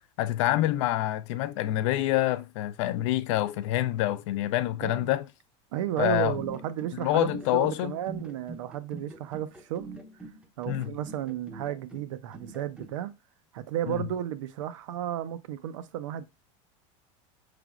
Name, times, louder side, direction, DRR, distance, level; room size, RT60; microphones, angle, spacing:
voice 1, 0.2-5.3 6.0-6.4 7.0-8.0 10.7-10.9 13.9-14.0, left 14 dB, 70° left, 0.4 m, -26 dB
voice 2, 5.7-9.9 10.6-13.1 13.5-16.2, right 11 dB, 85° right, 0.6 m, -33 dB
sound 1, 6.3-12.9, right 2 dB, 5° right, 0.5 m, -44 dB
4.9 x 3.3 x 2.3 m
supercardioid pair, 135°, 16 cm